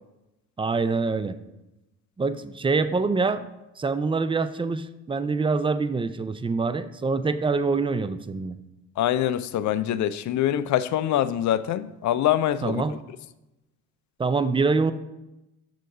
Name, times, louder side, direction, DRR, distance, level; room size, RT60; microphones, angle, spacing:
voice 1, 0.6-1.4 2.2-3.5 3.8-8.6 12.6-13.0 14.2-14.9, right 4 dB, 15° right, 0.4 m, -25 dB
voice 2, 9.0-12.8, left 11 dB, 45° left, 0.5 m, -24 dB
6.4 x 4.0 x 6.3 m
hypercardioid pair, 50°, 40 cm